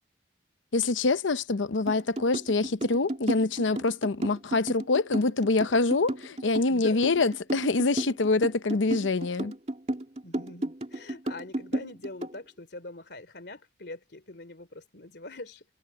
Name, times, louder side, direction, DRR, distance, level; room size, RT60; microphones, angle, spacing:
voice 1, 0.7-9.5, left 3 dB, 90° left, 0.8 m, -25 dB
sound 1, 1.9-12.4, right 1 dB, 35° right, 2.8 m, -33 dB
voice 2, 6.6-7.0 10.2-15.7, left 2 dB, 65° left, 3.0 m, -42 dB
head